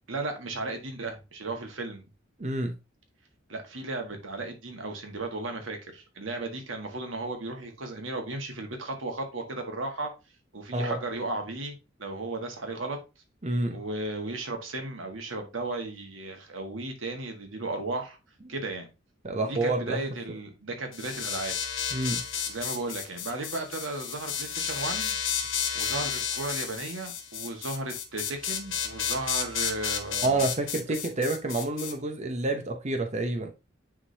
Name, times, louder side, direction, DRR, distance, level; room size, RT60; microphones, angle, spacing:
voice 1, 0.1-2.0 3.5-10.1 10.5-13.0 13.7-18.2 18.5-18.9 19.4-21.5 22.5-25.2 25.7-30.5, right 2 dB, 90° right, 1.6 m, -35 dB
voice 2, 2.4-2.7 10.7-11.0 13.4-13.8 19.2-20.0 21.9-22.2 30.2-33.5, right 2 dB, 35° right, 0.8 m, -28 dB
sound 1, 20.9-31.9, left 8 dB, 85° left, 1.3 m, -32 dB
9.8 x 3.7 x 2.7 m
head